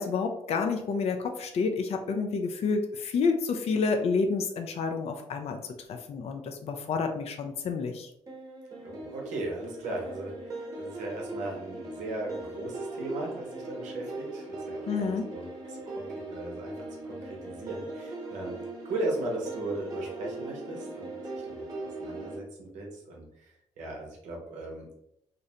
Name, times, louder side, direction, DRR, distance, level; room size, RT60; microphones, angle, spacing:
voice 1, 0.0-5.6 5.9-8.1 14.9-15.3, left 4 dB, 60° left, 5 dB, 0.4 m, -29 dB
sound 1, 8.3-22.4, right 2 dB, 30° right, 1.0 m, -39 dB
voice 2, 8.8-16.7 17.0-18.6 18.8-21.6 22.0-23.5 23.8-25.0, right 2 dB, 85° right, -1 dB, 0.7 m, -37 dB
2.6 x 2.0 x 2.7 m, 0.80 s
supercardioid pair, 60°, 12 cm